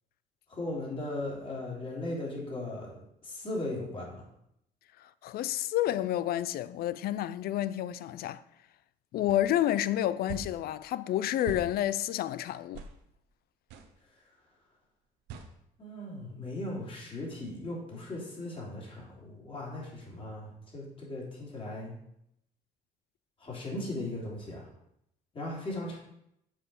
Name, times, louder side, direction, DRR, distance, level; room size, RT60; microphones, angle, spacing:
voice 1, 0.5-2.9 3.2-4.1 15.8-21.9 23.4-24.7 25.3-26.0, left 1 dB, 30° left, 3.7 m, -37 dB
voice 2, 5.2-8.4 9.1-12.8, left 12 dB, 65° left, 0.5 m, -30 dB
sound 1, 9.3-9.4 10.3-10.5 11.5-11.7 12.7-12.9 13.7-13.9 15.3-15.5, right 5 dB, 85° right, 1.1 m, -41 dB
7.4 x 4.9 x 6.4 m
cardioid pair, 110°, 17 cm